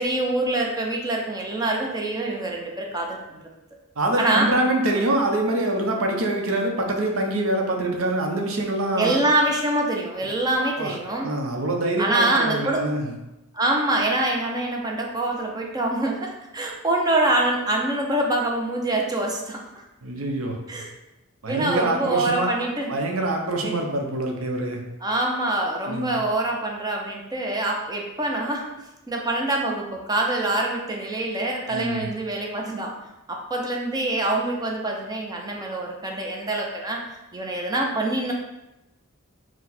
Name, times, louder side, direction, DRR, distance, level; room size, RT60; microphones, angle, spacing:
voice 1, 0.0-3.5 4.2-4.5 8.9-11.3 12.0-12.9 13.5-19.6 20.7-20.9 21.5-22.9 23.6-23.7 25.0-28.6 29.1-32.9 33.3-37.0 37.3-38.3, right 2 dB, 20° right, 0 dB, 0.5 m, -25 dB
voice 2, 4.0-9.2 10.8-13.1 20.0-20.8 21.4-22.5 22.9-24.8 25.9-26.1 31.7-32.1, right 1 dB, 75° right, 1 dB, 0.7 m, -25 dB
4.6 x 2.1 x 4.1 m, 0.96 s
head